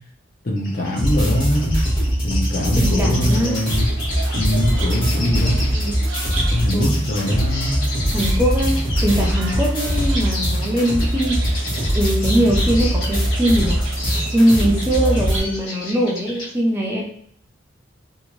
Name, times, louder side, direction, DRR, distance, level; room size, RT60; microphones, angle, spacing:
voice 1, 0.4-1.8 2.2-3.9 4.3-5.6 6.5-7.9, equal, 45° left, -1 dB, 0.7 m, -22 dB
sound 1, 0.6-16.5, left 2 dB, 75° left, 1.0 m, -33 dB
sound 2, 1.0-15.4, equal, 25° left, 1.1 m, -22 dB
voice 2, 2.7-3.6 5.7-5.9 6.7-6.9 8.1-11.6 11.9-13.8 14.3-17.0, equal, 10° right, -3 dB, 0.4 m, -21 dB
sound 3, 3.1-15.4, right 4 dB, 85° right, 0.5 m, -35 dB
2.6 x 2.5 x 3.0 m, 0.63 s
head